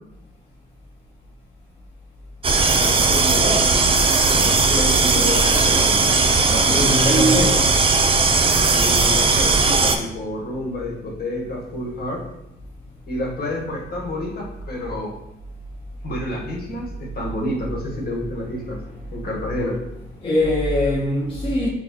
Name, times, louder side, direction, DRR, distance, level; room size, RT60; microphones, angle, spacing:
sound 1, 2.4-10.0, right 4 dB, 25° right, 0.4 m, -17 dB
voice 1, 2.7-3.7 4.3-6.1 8.7-12.2 13.1-15.1 16.0-18.8 19.1-19.8, left 1 dB, 50° left, 1.3 m, -29 dB
voice 2, 6.5-7.7 20.2-21.7, left 2 dB, 25° left, 0.7 m, -22 dB
5.9 x 2.3 x 2.8 m
cardioid pair, 90°, 20 cm